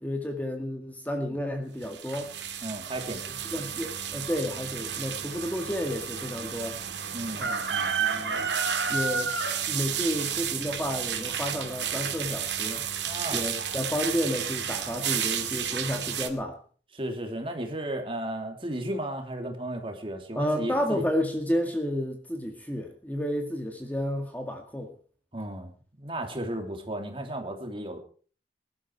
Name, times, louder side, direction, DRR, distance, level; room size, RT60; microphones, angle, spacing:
voice 1, 0.0-2.3 3.5-6.8 7.4-7.6 8.0-8.4 8.9-9.3 9.7-12.8 13.3-16.6 20.4-24.9, equal, 10° left, 4 dB, 2.0 m, -31 dB
sound 1, 1.8-16.3, right 7 dB, 80° right, 2.6 m, -31 dB
voice 2, 2.6-3.2 7.1-8.0 13.1-13.4 16.9-21.0 25.3-28.0, right 1 dB, 30° right, 4 dB, 3.1 m, -34 dB
21.0 x 12.5 x 4.7 m, 0.42 s
head